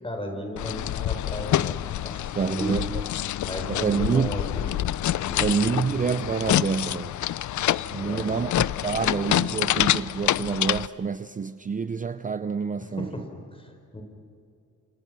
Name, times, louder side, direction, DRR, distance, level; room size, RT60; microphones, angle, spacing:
voice 1, 0.0-2.9 3.4-4.8 5.3-5.9 7.9-8.5 12.8-14.0, equal, 20° left, 4.7 m, -35 dB
sound 1, 0.6-10.9, left 13 dB, 70° left, 0.5 m, -27 dB
voice 2, 2.4-3.0 3.7-4.3 5.4-7.2 7.9-13.1, right 5 dB, 25° right, 0.6 m, -27 dB
30.0 x 27.0 x 6.2 m
wide cardioid pair, 130°, 30 cm